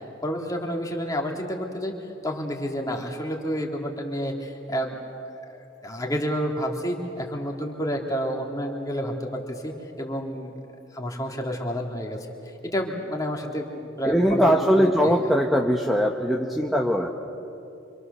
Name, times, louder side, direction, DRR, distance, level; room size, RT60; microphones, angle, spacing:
voice 1, 0.2-1.9 2.2-5.0 5.4-10.5 10.9-12.2 12.6-14.9, equal, 20° left, 0 dB, 2.7 m, -29 dB
voice 2, 14.0-17.1, equal, ahead, 0 dB, 1.1 m, -21 dB
26.5 x 26.0 x 6.9 m, 2.7 s
head